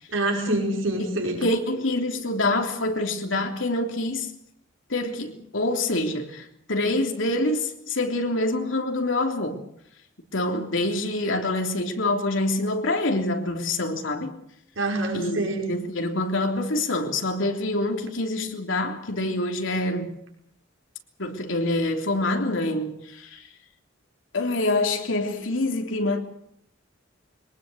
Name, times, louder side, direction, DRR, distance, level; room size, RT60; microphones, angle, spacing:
voice 1, 0.1-1.4 14.8-15.7, right 2 dB, 85° right, 5.6 m, -26 dB
voice 2, 1.4-4.3 4.9-9.6 10.3-14.4 15.1-15.4 15.7-20.2 21.2-23.4 24.3-26.2, left 2 dB, 80° left, 3.3 m, -26 dB
23.0 x 19.5 x 8.0 m
head